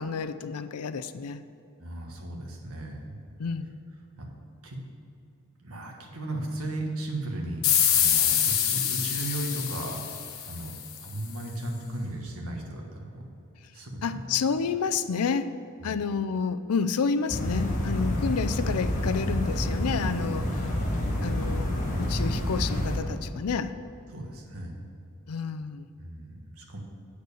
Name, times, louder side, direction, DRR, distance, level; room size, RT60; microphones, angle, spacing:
voice 1, 0.0-1.4 3.4-3.7 14.0-15.5 15.8-20.6 21.2-21.7 22.0-23.7 25.3-25.9, left 5 dB, 85° left, 12 dB, 0.5 m, -29 dB
voice 2, 1.8-3.2 4.2-4.3 4.6-4.8 5.6-7.7 7.9-10.1 10.4-10.7 11.0-13.3 13.7-14.5 15.8-16.1 24.1-24.8 26.0-26.8, right 1 dB, 70° right, 1 dB, 1.6 m, -36 dB
sound 1, 7.6-11.0, left 9 dB, 65° left, 1.0 m, -25 dB
sound 2, 17.3-23.0, left 1 dB, 35° left, 1.5 m, -28 dB
8.0 x 6.6 x 6.9 m, 2.7 s
head